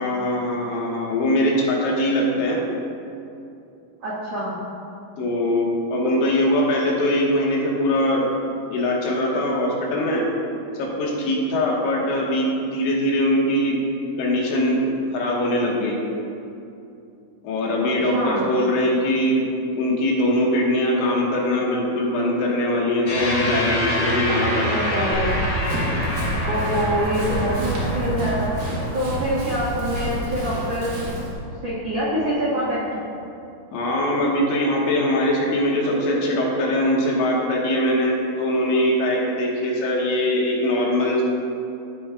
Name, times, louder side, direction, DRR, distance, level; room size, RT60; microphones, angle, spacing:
voice 1, 0.0-2.6 5.2-8.3 8.7-10.2 10.8-13.8 14.2-14.8 15.1-16.0 17.4-19.5 19.7-25.1 33.7-41.2, left 1 dB, 75° left, -3 dB, 3.5 m, -22 dB
voice 2, 4.0-4.5 6.0-6.2 17.8-18.4 24.6-25.4 26.5-28.5 28.9-31.0 31.6-32.8, equal, 80° right, -9 dB, 1.4 m, -25 dB
sound 1, 23.1-31.7, equal, 50° left, 3.1 m, -27 dB
Run, 25.1-31.3, right 1 dB, 60° right, 2.7 m, -29 dB
15.5 x 6.2 x 2.4 m, 2.6 s
omnidirectional pair, 5.6 m